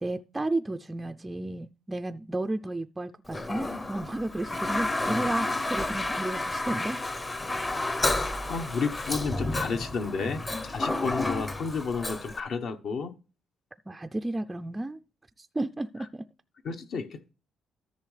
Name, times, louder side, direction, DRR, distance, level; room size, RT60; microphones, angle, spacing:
voice 1, 0.0-7.0 13.9-15.0 15.4-16.3, right 2 dB, 10° right, 0.4 m, -33 dB
Toilet flush, 3.3-12.4, left 2 dB, 15° left, 0.7 m, -31 dB
voice 2, 7.6-13.1 16.6-17.3, left 5 dB, 55° left, 1.0 m, -32 dB
13.5 x 6.3 x 3.3 m
cardioid pair, 145°, 0 cm